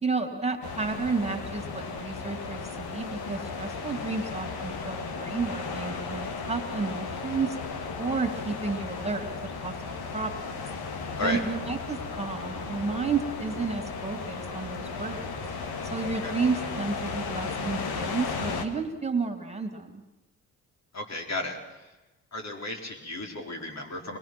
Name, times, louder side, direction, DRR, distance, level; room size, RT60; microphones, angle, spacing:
voice 1, 0.0-7.6 8.0-9.3 9.6-10.6 11.2-15.4 15.9-20.0, right 4 dB, 15° right, 7 dB, 2.5 m, -31 dB
sound 1, 0.6-18.7, left 4 dB, 75° left, 2.1 m, -35 dB
voice 2, 20.9-21.9 22.3-24.2, left 2 dB, 45° left, 2 dB, 4.1 m, -34 dB
25.0 x 21.0 x 6.1 m, 1.1 s
supercardioid pair, 60°, 38 cm